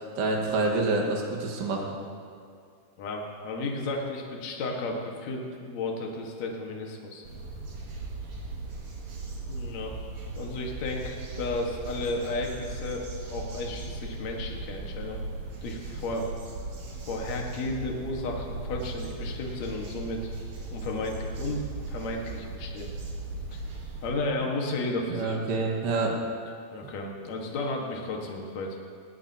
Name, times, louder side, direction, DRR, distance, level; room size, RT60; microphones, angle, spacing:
voice 1, 0.2-1.9 25.1-26.2, right 3 dB, 80° right, 0 dB, 3.8 m, -27 dB
voice 2, 3.0-7.2 9.5-10.0 10.3-15.2 15.6-16.3 17.1-20.3 20.7-22.9 23.5-23.6 24.0-25.7 26.7-28.8, left 2 dB, 55° left, 0 dB, 2.2 m, -33 dB
sound 1, 7.2-24.1, right 3 dB, 50° right, 2.7 m, -38 dB
19.0 x 17.5 x 2.9 m, 2.3 s
omnidirectional pair, 4.9 m